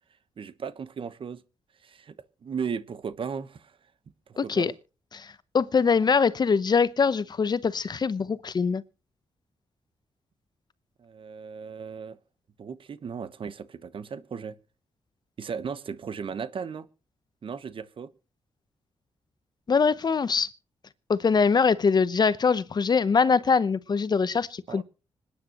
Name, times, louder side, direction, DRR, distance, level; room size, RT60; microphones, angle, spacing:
voice 1, 0.4-1.4 1.8-2.1 2.4-3.8 4.3-4.7 11.0-12.2 12.6-14.6 15.4-16.9 17.4-18.1 24.7-24.8, right 6 dB, 50° right, 1.1 m, -36 dB
voice 2, 4.4-4.7 5.1-8.8 19.7-20.5 21.1-24.8, left 5 dB, 40° left, 0.8 m, -23 dB
26.0 x 9.9 x 3.0 m
cardioid pair, 115°, 11 cm